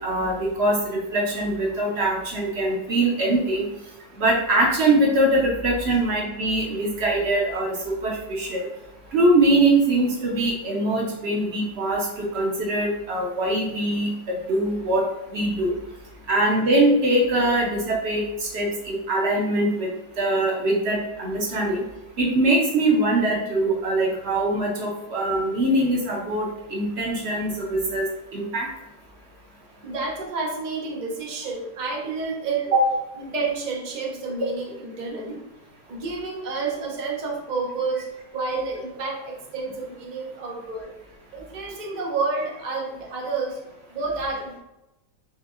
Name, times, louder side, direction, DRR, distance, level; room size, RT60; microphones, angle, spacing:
voice 1, 0.0-3.6 4.2-7.7 8.0-8.7 9.1-14.1 14.5-15.0 15.3-15.7 16.3-18.2 18.5-19.9 20.2-21.8 22.2-28.1 28.3-28.7 32.7-32.9, right 1 dB, 55° right, -1 dB, 0.7 m, -22 dB
voice 2, 29.8-32.7 33.2-35.4 35.9-38.1 38.3-40.9 41.3-43.6 43.9-44.6, right 4 dB, 80° right, -1 dB, 0.4 m, -29 dB
5.3 x 3.1 x 2.5 m, 0.93 s
omnidirectional pair, 2.0 m